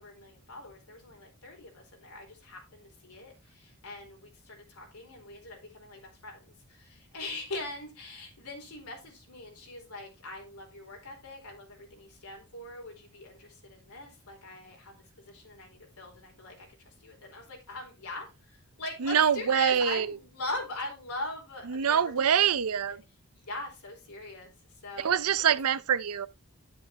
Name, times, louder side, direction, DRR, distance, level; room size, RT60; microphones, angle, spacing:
voice 1, 0.0-22.5 22.9-23.0 23.3-24.5 24.8-25.1 25.4-25.5, left 2 dB, 85° left, 4.3 m, -42 dB
voice 2, 19.0-20.1 21.7-23.0 25.0-26.3, right 8 dB, 90° right, 0.6 m, -25 dB
9.5 x 9.5 x 2.9 m
head